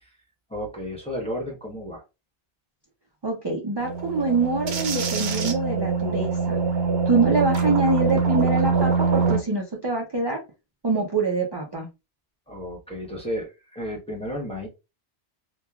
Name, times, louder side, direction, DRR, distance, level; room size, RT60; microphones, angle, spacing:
voice 1, 0.5-2.0 12.5-14.7, equal, 5° left, -1 dB, 0.8 m, -33 dB
voice 2, 3.2-6.6 7.1-10.4 10.8-11.9, right 3 dB, 40° right, -1 dB, 0.3 m, -25 dB
sound 1, 3.8-9.4, right 4 dB, 70° right, 0.9 m, -23 dB
2.9 x 2.2 x 2.3 m, 0.26 s
omnidirectional pair, 1.2 m